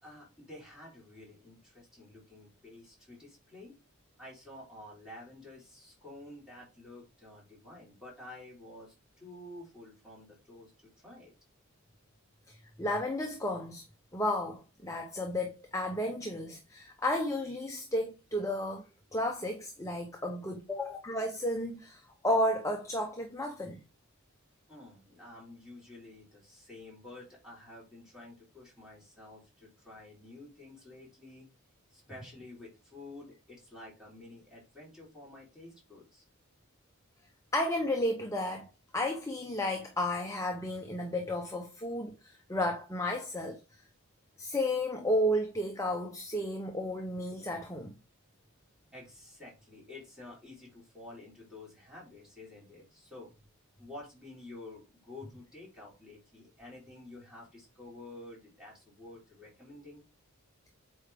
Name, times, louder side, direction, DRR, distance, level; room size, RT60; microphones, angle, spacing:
voice 1, 0.0-3.8 4.2-11.3 24.7-31.5 31.9-36.2 48.9-53.3 53.8-60.0, left 2 dB, 5° right, 4.3 m, -50 dB
voice 2, 12.8-13.8 14.1-23.8 37.5-43.6 44.4-47.9, left 1 dB, 15° left, 0.9 m, -33 dB
8.0 x 4.9 x 3.6 m
head